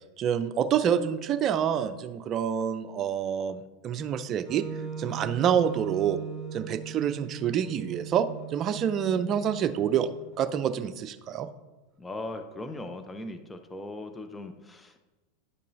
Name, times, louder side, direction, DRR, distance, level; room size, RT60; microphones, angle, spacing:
voice 1, 0.2-4.6 5.0-6.2 6.5-10.1 10.4-11.5, right 8 dB, 40° right, 10 dB, 0.5 m, -27 dB
Wind instrument woodwind instrument, 4.4-10.5, right 9 dB, 15° right, 2.1 m, -39 dB
voice 2, 12.0-15.0, left 2 dB, 15° left, 7 dB, 0.5 m, -39 dB
9.8 x 5.4 x 2.6 m, 1.1 s
hypercardioid pair, 95°, 0 cm